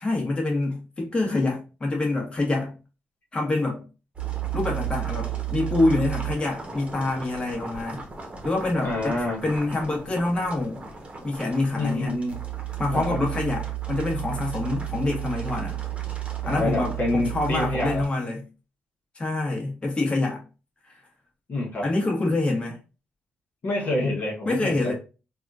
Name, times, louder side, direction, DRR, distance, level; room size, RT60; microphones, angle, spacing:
voice 1, 0.0-2.7 3.3-3.8 4.5-8.0 8.4-10.8 11.2-12.2 12.8-15.8 16.4-18.4 19.1-20.4 20.9-21.0 21.8-22.8 24.4-24.9, left 2 dB, 25° left, 1.2 m, -26 dB
sound 1, 4.2-18.1, right 11 dB, 30° right, 1.0 m, -33 dB
voice 2, 8.8-9.4 11.7-12.4 12.9-13.2 16.4-18.0 21.5-21.9 23.6-24.9, left 2 dB, 50° left, 1.1 m, -27 dB
3.5 x 2.4 x 2.5 m
cardioid pair, 80°, 4 cm